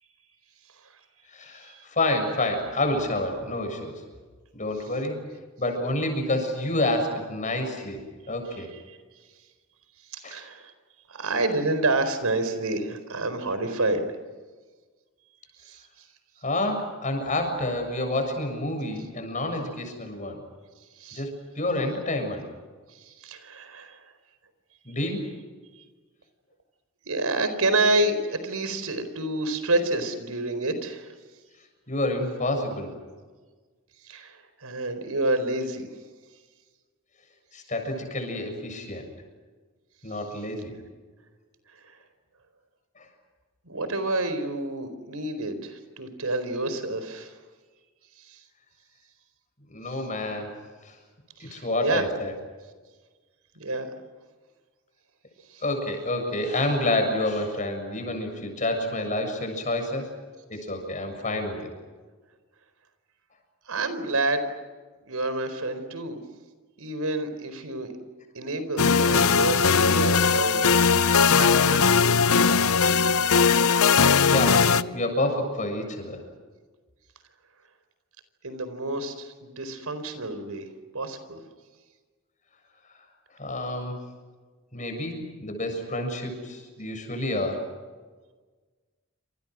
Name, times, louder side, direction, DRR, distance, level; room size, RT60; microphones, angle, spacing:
voice 1, 1.3-4.0 4.5-5.2 5.6-8.0 8.3-8.7 10.2-10.4 16.4-20.4 21.1-21.3 21.6-22.4 24.9-25.2 31.9-32.9 37.5-39.1 40.0-40.8 43.0-43.1 49.7-50.5 50.8-51.0 51.4-52.3 55.6-60.1 60.5-61.7 74.3-76.2 83.4-84.0 84.7-87.7, left 1 dB, 35° left, 5 dB, 7.2 m, -28 dB
voice 2, 8.5-9.0 10.1-10.7 11.1-14.0 15.6-16.1 21.0-21.2 22.9-24.0 27.0-31.2 34.0-35.9 41.7-42.0 43.6-47.3 48.2-48.4 49.9-50.0 51.4-52.1 53.6-53.9 55.5-55.6 63.6-64.5 65.1-66.2 66.8-67.9 68.3-71.0 71.3-72.2 78.4-80.7 80.9-81.4, right 2 dB, 80° right, 10 dB, 4.5 m, -29 dB
sound 1, 68.8-74.8, left 5 dB, 75° left, 0.7 m, -19 dB
28.5 x 27.5 x 6.4 m, 1.4 s
head